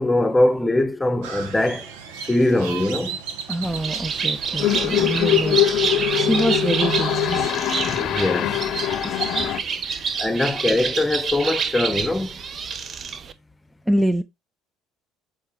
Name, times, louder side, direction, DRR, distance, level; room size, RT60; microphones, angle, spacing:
voice 1, 0.0-1.9 2.3-3.2 7.9-8.6 10.2-12.4, left 1 dB, 10° left, 1.0 m, -22 dB
Crow, 1.2-7.5, right 10 dB, 85° right, 1.1 m, -34 dB
voice 2, 3.5-5.6 6.2-7.5 9.0-10.2 10.5-10.6 13.9-14.2, right 1 dB, 5° right, 0.6 m, -26 dB
Bird, 3.6-13.3, right 6 dB, 45° right, 0.8 m, -28 dB
sound 1, 4.6-9.6, left 13 dB, 60° left, 0.6 m, -23 dB
7.2 x 4.3 x 3.2 m
supercardioid pair, 80°, 0 cm